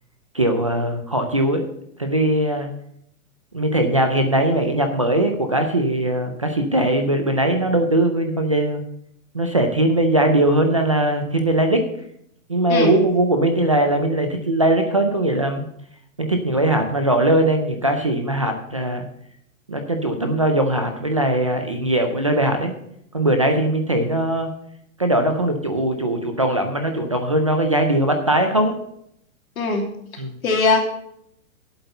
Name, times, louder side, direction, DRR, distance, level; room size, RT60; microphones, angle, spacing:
voice 1, 0.3-1.6 2.0-2.7 3.5-8.8 9.3-11.9 12.5-15.7 16.2-19.1 19.7-22.7 23.1-24.5 25.0-28.8 30.2-30.4, right 1 dB, 25° right, 6 dB, 0.4 m, -20 dB
voice 2, 12.7-13.0 29.6-29.9 30.4-30.8, left 3 dB, 85° left, 1 dB, 2.8 m, -20 dB
8.0 x 8.0 x 6.4 m, 0.74 s
hypercardioid pair, 180°, 41 cm